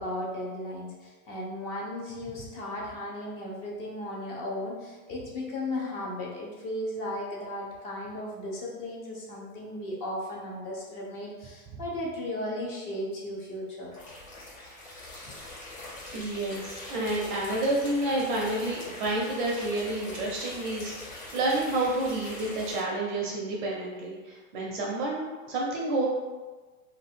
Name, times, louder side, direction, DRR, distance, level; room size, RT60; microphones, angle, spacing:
voice 1, 0.0-13.9, left 1 dB, 35° left, -3 dB, 0.7 m, -35 dB
sound 1, 13.9-22.8, left 2 dB, 65° left, 1.4 m, -42 dB
voice 2, 16.1-26.1, right 2 dB, 35° right, -2 dB, 0.5 m, -29 dB
2.6 x 2.3 x 3.4 m, 1.3 s
supercardioid pair, 145°, 43 cm